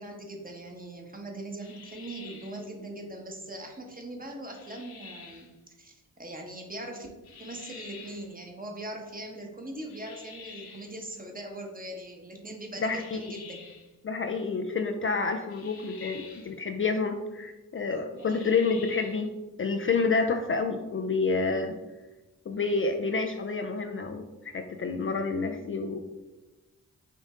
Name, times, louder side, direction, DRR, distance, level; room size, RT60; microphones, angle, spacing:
voice 1, 0.0-5.5 5.8-7.1 7.4-13.6 18.2-18.5, right 1 dB, 25° right, 2 dB, 1.1 m, -41 dB
sound 1, 1.6-2.6 4.5-5.5 7.2-8.3 9.9-11.0 12.8-13.9 15.5-16.5 18.2-19.2, left 5 dB, 80° left, 0.8 m, -48 dB
voice 2, 12.8-13.2 14.0-19.3 19.6-21.7 22.5-26.0, left 4 dB, 35° left, 5 dB, 0.4 m, -29 dB
5.2 x 2.6 x 3.6 m, 1.1 s
cardioid pair, 50°, 36 cm